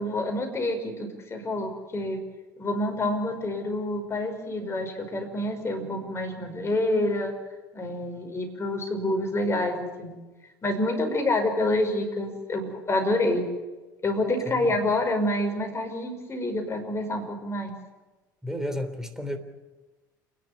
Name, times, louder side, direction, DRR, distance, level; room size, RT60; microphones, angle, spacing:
voice 1, 0.0-2.2 2.6-7.4 7.7-10.2 10.6-13.5 14.0-17.8, left 1 dB, 25° left, 5.6 m, -27 dB
voice 2, 18.4-19.4, left 1 dB, 5° right, 3.4 m, -32 dB
28.5 x 11.0 x 9.7 m
hypercardioid pair, 65°, 10 cm